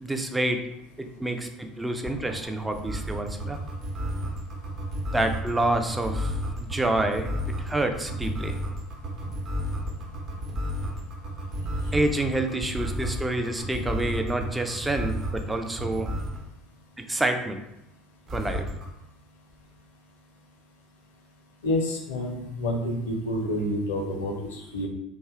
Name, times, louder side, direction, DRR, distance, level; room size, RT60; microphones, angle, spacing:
voice 1, 0.0-0.6 1.0-3.6 5.1-8.6 11.9-16.1 17.0-17.6 18.3-18.7, right 2 dB, 10° right, 5 dB, 0.4 m, -28 dB
sound 1, 2.0-16.4 18.3-18.9, equal, 40° right, 0.7 m, -31 dB
voice 2, 21.6-24.9, left 1 dB, 70° left, 1 dB, 0.5 m, -28 dB
2.7 x 2.1 x 3.4 m, 0.86 s
figure-of-eight pair, 65°, 0 cm